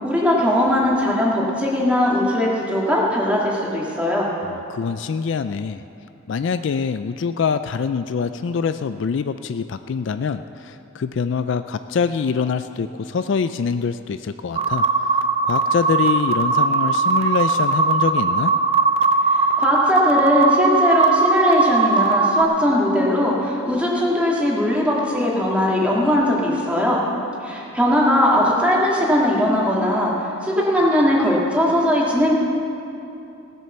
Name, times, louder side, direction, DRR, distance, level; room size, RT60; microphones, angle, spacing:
voice 1, 0.0-4.3 19.3-27.0 27.4-30.1 30.4-32.3, left 1 dB, 5° right, -4 dB, 2.0 m, -19 dB
voice 2, 4.4-5.8 6.3-15.2 15.4-18.5, left 6 dB, 55° left, 11 dB, 0.3 m, -24 dB
sound 1, 14.6-22.4, right 4 dB, 30° right, 0.5 m, -19 dB
17.0 x 7.6 x 6.7 m, 2.8 s
head